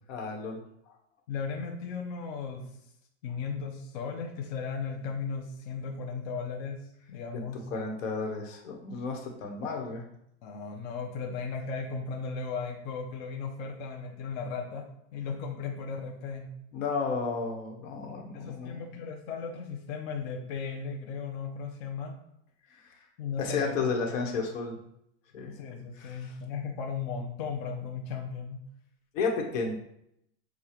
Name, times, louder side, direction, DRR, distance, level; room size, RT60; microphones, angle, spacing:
voice 1, 0.1-0.6 7.3-7.4 7.7-10.0 16.7-18.9 23.4-24.7 25.3-25.5 26.0-26.3 29.1-29.7, left 4 dB, 65° left, 2 dB, 1.2 m, -32 dB
voice 2, 1.3-2.7 3.2-7.7 10.4-14.9 15.1-16.5 18.3-22.2 23.2-23.9 25.4-28.6, left 5 dB, 35° left, 1 dB, 0.4 m, -36 dB
6.6 x 2.3 x 2.9 m, 0.76 s
supercardioid pair, 150°, 41 cm